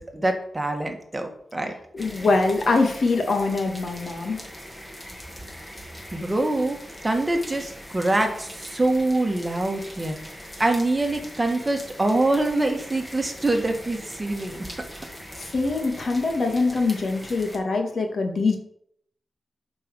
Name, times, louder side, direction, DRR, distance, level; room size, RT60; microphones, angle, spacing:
voice 1, 0.0-1.7 6.1-6.8 7.0-10.2 10.6-14.7, right 2 dB, 20° right, 4 dB, 1.8 m, -24 dB
voice 2, 1.9-4.4 15.4-18.6, left 3 dB, 60° left, 4 dB, 1.9 m, -23 dB
sound 1, 2.0-17.6, equal, 10° left, 2.1 m, -41 dB
9.1 x 5.5 x 6.4 m, 0.68 s
wide cardioid pair, 85°, 0 cm